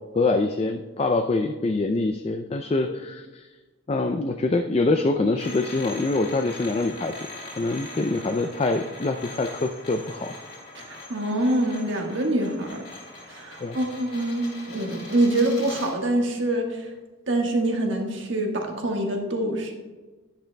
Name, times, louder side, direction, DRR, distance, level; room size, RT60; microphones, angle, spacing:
voice 1, 0.1-3.5 3.9-7.1 7.6-10.3 13.6-13.8, left 2 dB, 30° left, 6 dB, 0.3 m, -25 dB
sound 1, 5.4-16.0, left 2 dB, 45° left, 2.4 m, -41 dB
voice 2, 10.8-12.8 13.3-16.9 17.3-19.7, right 1 dB, 65° right, 2 dB, 1.4 m, -25 dB
10.5 x 10.0 x 2.2 m, 1.3 s
head